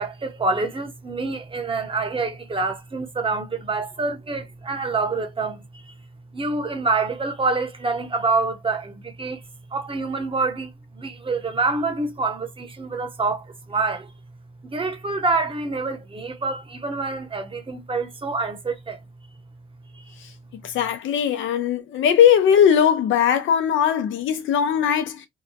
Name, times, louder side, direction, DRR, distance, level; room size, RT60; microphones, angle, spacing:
voice 1, 0.0-5.9 6.3-9.4 9.7-14.1 14.6-19.0 19.9-20.0, right 3 dB, 25° right, 0.8 m, -26 dB
voice 2, 20.6-25.3, left 8 dB, 80° left, 0.7 m, -19 dB
2.8 x 2.2 x 2.7 m
cardioid pair, 90°, 20 cm